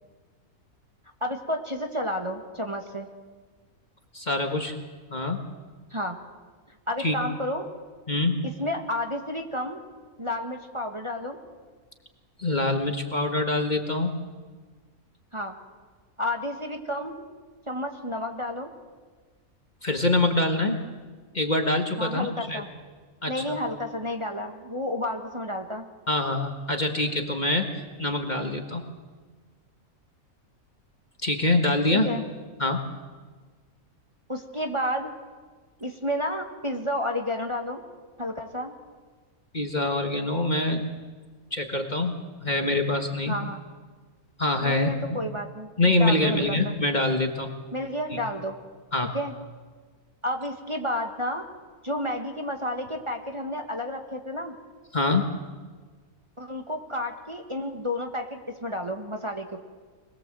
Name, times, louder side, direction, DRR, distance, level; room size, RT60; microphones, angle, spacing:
voice 1, 1.2-3.1 5.9-6.2 6.9-7.7 8.4-9.8 10.2-11.4 15.3-15.6 16.2-17.3 17.7-18.7 22.0-22.7 23.3-25.9 31.9-32.2 34.3-35.1 35.8-37.8 38.2-38.7 43.3-43.6 44.6-45.7 46.0-46.8 47.7-48.6 49.1-49.3 50.2-51.4 51.8-54.5 56.4-59.6, left 1 dB, 20° right, 3 dB, 1.6 m, -31 dB
voice 2, 4.1-4.8 5.1-5.5 7.0-7.2 8.1-8.4 12.4-14.1 19.8-20.8 21.3-22.6 23.2-23.6 26.1-28.9 31.2-32.1 32.6-32.8 39.5-40.9 41.5-43.4 44.4-45.2 45.8-47.5 48.9-49.2 54.9-55.3, left 2 dB, 30° left, 4 dB, 1.7 m, -25 dB
25.5 x 20.5 x 7.7 m, 1.4 s
omnidirectional pair, 1.5 m